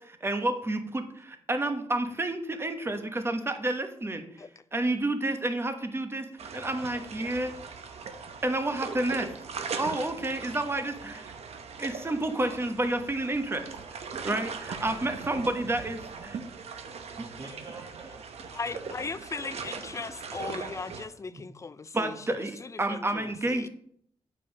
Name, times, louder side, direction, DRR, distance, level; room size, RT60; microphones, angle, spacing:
voice 1, 0.2-4.3 4.7-7.5 8.4-9.3 9.8-11.3 11.8-13.7 14.2-16.4 21.3-21.4 21.9-23.7, right 2 dB, 25° right, 1.1 m, -30 dB
sound 1, 6.4-21.1, right 5 dB, 80° right, 0.9 m, -40 dB
voice 2, 17.2-18.3 18.7-19.5, right 2 dB, 40° right, 1.7 m, -45 dB
voice 3, 18.5-23.7, left 4 dB, 30° left, 0.4 m, -38 dB
9.2 x 5.4 x 5.3 m
wide cardioid pair, 105°, 11 cm